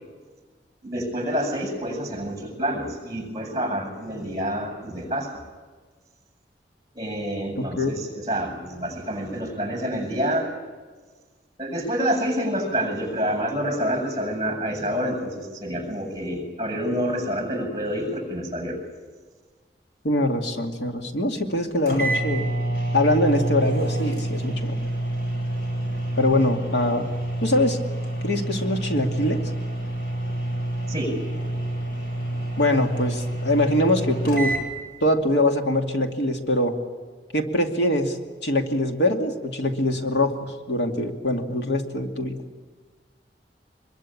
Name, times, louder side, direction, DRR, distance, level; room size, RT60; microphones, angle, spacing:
voice 1, 0.8-5.4 6.9-10.5 11.6-18.8 30.9-31.2, equal, 20° right, 2 dB, 7.2 m, -28 dB
voice 2, 7.6-7.9 20.0-22.5 22.9-24.8 26.2-27.1 27.4-27.8 28.2-29.4 32.6-34.6 35.0-36.8 37.3-38.2 38.4-42.4, left 1 dB, 85° left, 4 dB, 2.5 m, -23 dB
sound 1, 21.5-21.6 21.9-34.7, right 1 dB, 65° left, 7.6 m, -28 dB
25.5 x 22.5 x 8.7 m, 1.4 s
head